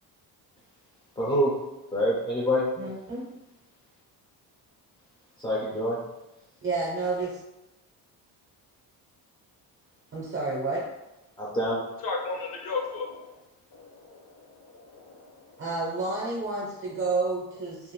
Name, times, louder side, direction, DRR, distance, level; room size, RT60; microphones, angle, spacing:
voice 1, 1.2-1.5 1.9-2.6 5.4-6.0 11.4-11.8, equal, 10° left, -6 dB, 0.4 m, -25 dB
voice 2, 2.8-3.3 6.6-7.4 10.1-10.8 15.6-17.9, right 3 dB, 30° right, -5 dB, 0.6 m, -30 dB
voice 3, 12.0-13.3 13.7-13.9 14.7-15.3, left 4 dB, 60° left, 1 dB, 0.7 m, -33 dB
2.5 x 2.5 x 3.0 m, 0.95 s
cardioid pair, 155°, 40 cm